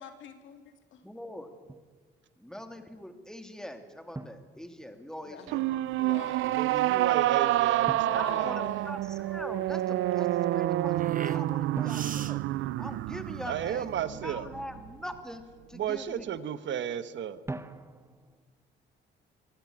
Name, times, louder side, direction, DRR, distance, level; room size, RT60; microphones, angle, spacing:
voice 1, 0.0-1.0 5.2-5.5 5.9-6.4 8.0-8.8, left 7 dB, 70° left, 7 dB, 2.8 m, -45 dB
voice 2, 1.0-1.5 2.4-5.7 8.1-12.4 12.8-15.4 15.7-16.3, equal, 5° left, 7 dB, 2.7 m, -42 dB
Drum, 1.7-2.0 4.1-5.3 7.9-9.3 11.8-13.5 17.5-18.4, right 2 dB, 15° right, 1.1 m, -44 dB
sound 1, 5.5-14.9, right 15 dB, 90° right, 0.6 m, -28 dB
sound 2, 5.9-13.9, right 7 dB, 40° right, 1.0 m, -45 dB
voice 3, 6.4-8.6 13.5-14.5 15.7-17.4, right 9 dB, 70° right, 14 dB, 1.2 m, -33 dB
24.0 x 15.0 x 8.8 m, 1.5 s
cardioid pair, 90°, 20 cm